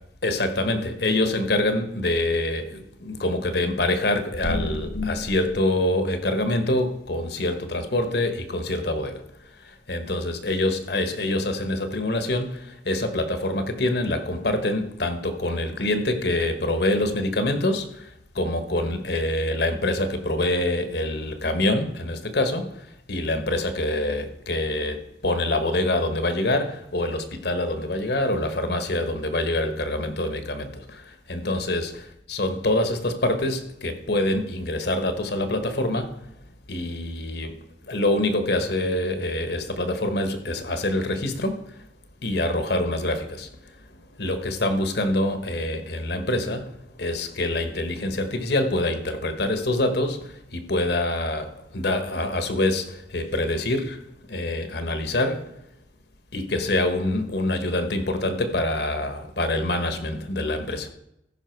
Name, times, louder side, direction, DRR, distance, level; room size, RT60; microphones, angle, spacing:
voice 1, 0.2-31.9 32.3-36.3 36.7-37.6 37.9-41.8 42.2-55.5 56.3-60.9, left 1 dB, 60° left, 8 dB, 1.3 m, -25 dB
14.5 x 5.9 x 4.6 m, 0.79 s
head